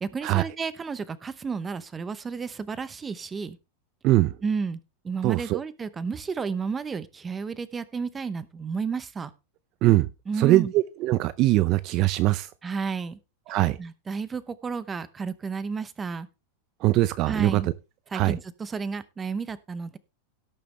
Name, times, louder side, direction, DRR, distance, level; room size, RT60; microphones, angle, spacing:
voice 1, 0.0-3.6 4.4-4.8 5.0-9.3 10.3-10.7 12.6-13.2 13.8-16.3 17.3-17.7 18.1-20.0, right 5 dB, 15° right, 16 dB, 0.8 m, -32 dB
voice 2, 4.0-4.4 5.2-5.6 9.8-10.1 10.4-12.5 13.5-13.8 16.8-17.7 18.1-18.4, right 17 dB, 40° right, 16 dB, 0.5 m, -22 dB
17.5 x 6.7 x 3.3 m, 0.27 s
supercardioid pair, 155°, 0 cm